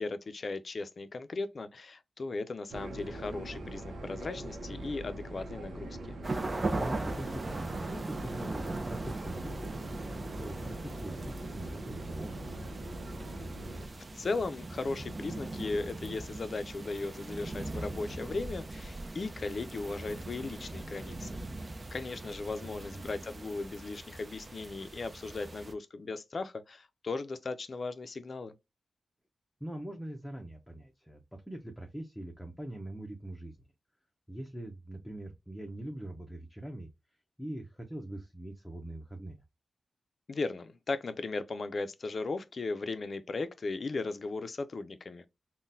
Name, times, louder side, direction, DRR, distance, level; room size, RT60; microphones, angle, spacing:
voice 1, 0.0-6.2 14.1-21.4 21.9-28.6 40.3-45.3, left 3 dB, 55° left, 0.4 m, -37 dB
sound 1, 2.7-13.9, right 1 dB, 85° right, 0.7 m, -43 dB
sound 2, 6.2-25.7, right 2 dB, 35° right, 0.5 m, -40 dB
voice 2, 6.8-10.1 10.4-12.6 22.4-23.0 29.6-33.6 34.3-36.9 37.4-39.4, right 1 dB, 5° left, 0.7 m, -43 dB
3.7 x 2.2 x 2.6 m
cardioid pair, 75°, 0 cm